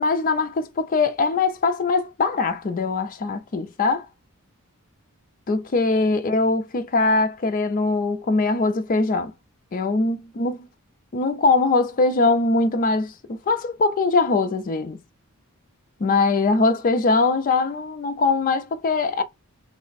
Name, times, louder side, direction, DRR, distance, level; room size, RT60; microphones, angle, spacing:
voice 1, 0.0-4.1 5.5-9.3 9.7-10.7 11.1-15.0 16.0-19.2, left 3 dB, 40° left, 0.4 m, -22 dB
3.2 x 2.0 x 4.0 m
head